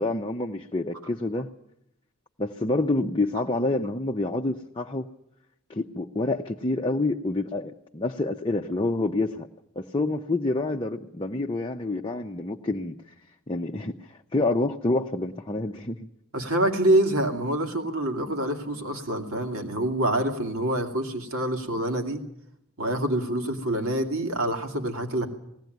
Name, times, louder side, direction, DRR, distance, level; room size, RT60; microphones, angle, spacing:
voice 1, 0.0-1.5 2.4-5.1 5.7-9.5 9.8-12.9 13.5-16.0, left 2 dB, 25° left, 2 dB, 0.7 m, -27 dB
voice 2, 16.3-22.2 22.8-25.3, right 1 dB, 70° right, 5 dB, 2.5 m, -26 dB
19.5 x 16.5 x 9.3 m, 0.81 s
head